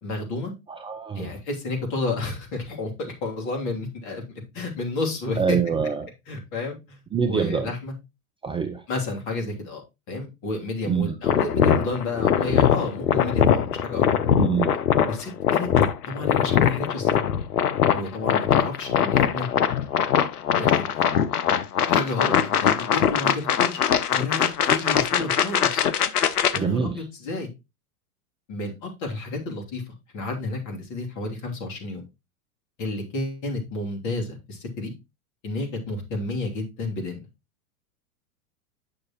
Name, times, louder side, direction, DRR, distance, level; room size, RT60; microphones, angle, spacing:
voice 1, 0.0-0.5 1.1-4.2 4.5-5.6 6.3-7.0 7.3-7.9 8.9-9.8 10.1-14.0 15.1-15.7 16.1-17.1 17.9-19.5 20.5-21.0 21.8-23.8 24.1-25.9 26.5-27.5 28.5-29.8 30.1-32.0 32.8-34.9 35.4-37.2, left 2 dB, 40° left, 2.9 m, -31 dB
voice 2, 0.7-1.4 5.4-6.1 7.1-7.7 8.4-8.8 10.9-11.1 14.4-14.7 26.5-26.9, right 6 dB, 10° right, 0.6 m, -25 dB
sound 1, 11.2-26.6, left 9 dB, 80° left, 0.8 m, -22 dB
8.6 x 6.2 x 3.0 m
hypercardioid pair, 100°, 44 cm